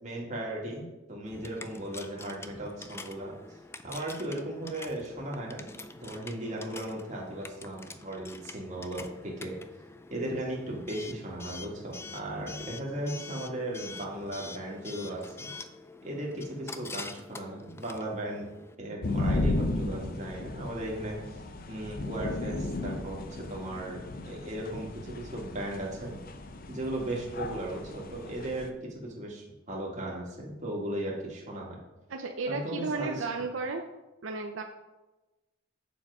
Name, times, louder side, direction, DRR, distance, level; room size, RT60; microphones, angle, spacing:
voice 1, 0.0-3.3 3.8-5.8 6.0-9.6 10.1-15.5 16.0-18.5 18.8-21.2 21.7-26.2 26.7-31.8 32.5-33.2, right 1 dB, 40° right, -3 dB, 2.2 m, -36 dB
Coin (dropping) / Alarm, 1.3-18.7, left 3 dB, 15° left, 0.4 m, -46 dB
sound 1, 19.0-28.7, left 2 dB, 45° left, 0.7 m, -35 dB
voice 2, 32.1-33.8 34.2-34.6, right 4 dB, 85° right, 4 dB, 0.7 m, -33 dB
7.2 x 6.8 x 4.9 m, 1.1 s
head